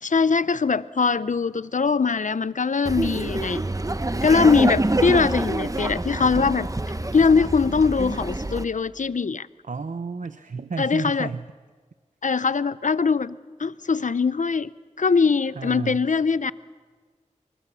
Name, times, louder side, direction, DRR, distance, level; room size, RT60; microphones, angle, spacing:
voice 1, 0.0-3.6 4.2-6.7 7.1-9.5 10.8-11.3 12.2-14.7 15.0-16.5, left 5 dB, 80° left, 17 dB, 0.7 m, -22 dB
Laughter, 2.9-8.6, right 2 dB, 25° right, 0.9 m, -26 dB
voice 2, 9.6-11.5 15.5-16.1, right 4 dB, 80° right, 10 dB, 0.8 m, -32 dB
28.0 x 23.0 x 7.0 m, 1.5 s
wide cardioid pair, 60°, 13 cm